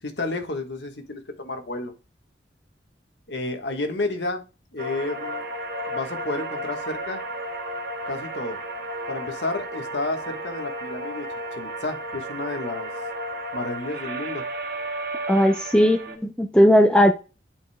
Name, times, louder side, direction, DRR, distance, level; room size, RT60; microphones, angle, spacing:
voice 1, 0.0-1.9 3.3-4.4 4.7-5.5 5.9-7.2 8.1-8.6 9.1-11.3 11.6-12.9 13.5-14.4, left 2 dB, 70° left, 1.5 m, -31 dB
space string, 4.8-16.2, right 1 dB, 55° right, 1.5 m, -33 dB
voice 2, 15.3-17.1, equal, 5° left, 0.5 m, -17 dB
10.5 x 5.3 x 2.2 m
head